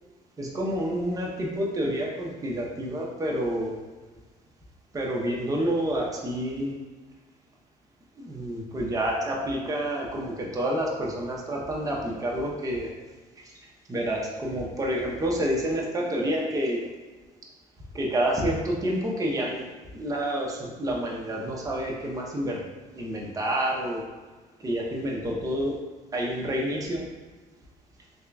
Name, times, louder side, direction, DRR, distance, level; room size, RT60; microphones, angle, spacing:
voice 1, 0.4-3.7 4.9-6.7 8.2-12.9 13.9-16.9 17.9-19.6 19.9-22.6 22.9-24.0 24.6-25.8 26.1-27.0, right 1 dB, 20° right, -2 dB, 0.7 m, -28 dB
3.6 x 3.3 x 2.3 m, 1.3 s
cardioid pair, 110°, 17 cm